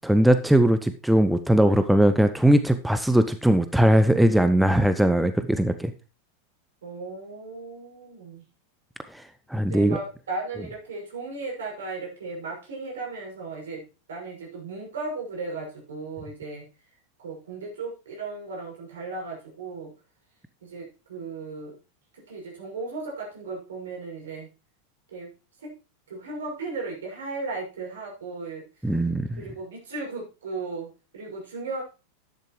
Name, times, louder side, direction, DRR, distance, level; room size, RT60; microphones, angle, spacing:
voice 1, 0.0-5.9 9.1-9.2 9.5-10.0 28.8-29.4, right 1 dB, 5° right, 10 dB, 0.7 m, -20 dB
voice 2, 6.8-8.4 9.7-16.7 17.2-19.9 20.6-21.7 22.1-24.5 25.1-25.3 25.6-25.7 26.1-28.6 29.3-31.8, right 3 dB, 65° right, 0 dB, 6.3 m, -36 dB
11.5 x 10.5 x 3.2 m, 0.31 s
figure-of-eight pair, 90°, 0 cm